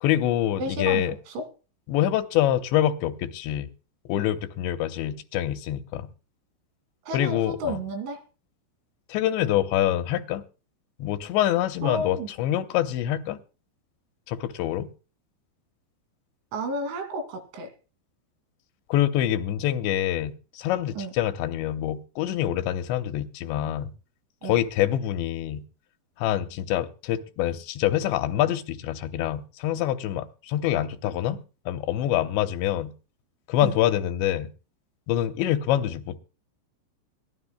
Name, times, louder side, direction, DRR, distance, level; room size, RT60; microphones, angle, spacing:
voice 1, 0.0-1.2 1.9-3.7 4.1-6.1 7.1-7.8 9.1-10.4 11.0-13.4 14.3-14.9 18.9-23.9 24.4-25.6 26.2-31.4 31.7-32.9 33.5-34.5 35.1-36.2, left 12 dB, 80° left, 3.0 m, -25 dB
voice 2, 0.6-1.5 7.0-8.2 11.8-12.3 16.5-17.7 21.0-21.1 24.4-24.6 33.6-33.7, right 1 dB, 90° right, 5.0 m, -32 dB
22.0 x 16.5 x 2.2 m
omnidirectional pair, 5.3 m